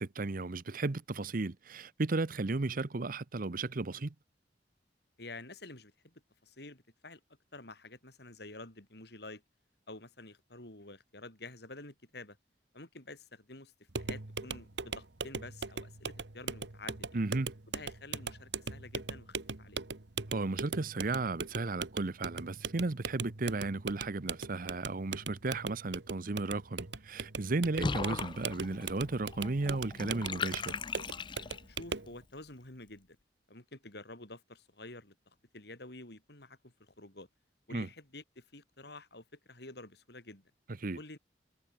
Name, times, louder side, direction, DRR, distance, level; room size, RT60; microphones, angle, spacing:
voice 1, 0.0-4.1 17.1-17.5 20.3-30.8 37.7-37.9 40.8-41.0, right 3 dB, 55° right, 0.8 m, -34 dB
voice 2, 5.2-6.1 6.4-7.2 7.5-9.4 9.9-12.4 12.7-13.7 14.0-17.2 17.7-19.8 31.7-33.2 33.5-35.1 35.5-37.3 37.7-40.5 40.9-41.2, left 2 dB, 65° left, 6.6 m, -49 dB
sound 1, 13.9-32.1, right 4 dB, 85° right, 1.6 m, -40 dB
Water / Bathtub (filling or washing), 27.8-31.8, left 4 dB, 25° left, 0.5 m, -39 dB
head